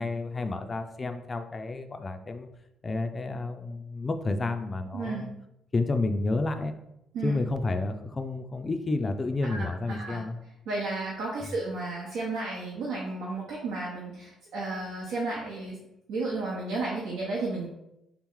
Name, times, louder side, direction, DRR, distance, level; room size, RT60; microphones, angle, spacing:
voice 1, 0.0-2.5 2.8-5.3 5.7-6.7 7.2-10.4, left 2 dB, 30° left, 7 dB, 0.4 m, -30 dB
voice 2, 4.9-5.2 7.1-7.4 9.5-9.7 10.0-10.2 10.7-15.8 16.1-17.7, right 3 dB, 90° right, -5 dB, 0.9 m, -33 dB
3.5 x 3.0 x 3.6 m, 0.84 s
cardioid pair, 100°, 0 cm